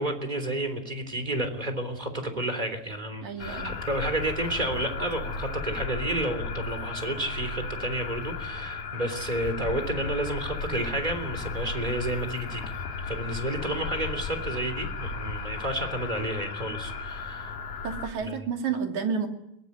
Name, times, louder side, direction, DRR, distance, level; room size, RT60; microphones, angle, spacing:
voice 1, 0.0-12.7 13.0-17.6 18.2-18.5, right 1 dB, 10° right, 8 dB, 3.0 m, -31 dB
voice 2, 3.2-3.8 17.8-19.3, right 6 dB, 55° right, 3 dB, 3.7 m, -30 dB
sound 1, 3.4-18.1, left 4 dB, 65° left, 3.7 m, -35 dB
22.5 x 21.0 x 9.6 m, 0.84 s
omnidirectional pair, 4.4 m